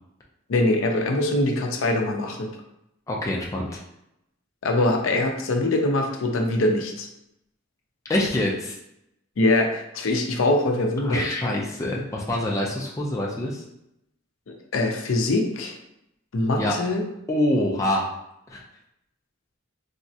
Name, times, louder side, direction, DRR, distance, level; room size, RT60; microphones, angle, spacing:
voice 1, 0.5-2.5 4.6-7.1 9.4-11.2 14.5-15.7 16.3-17.0, left 2 dB, 75° left, 3 dB, 0.5 m, -23 dB
voice 2, 3.1-3.8 8.1-8.8 11.0-13.6 16.6-16.8 17.3-18.1 18.5-18.6, left 1 dB, 15° left, -2 dB, 0.4 m, -25 dB
3.4 x 2.1 x 2.7 m, 0.81 s
head